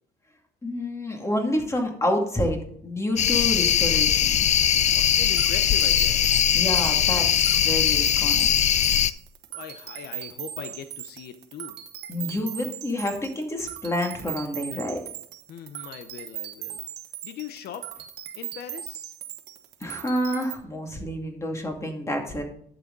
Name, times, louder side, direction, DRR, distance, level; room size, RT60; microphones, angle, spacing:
voice 1, 0.6-4.4 6.5-8.5 12.1-15.0 19.8-22.4, left 1 dB, 15° left, 2 dB, 2.4 m, -28 dB
sound 1, 3.2-9.1, left 9 dB, 45° left, 0.5 m, -21 dB
voice 2, 4.9-6.5 9.5-11.8 15.5-16.8 17.2-19.1, left 8 dB, 70° left, 10 dB, 0.8 m, -40 dB
sound 2, 4.9-20.5, right 12 dB, 80° right, 1.2 m, -39 dB
11.5 x 7.8 x 4.0 m, 0.63 s
cardioid pair, 110°, 17 cm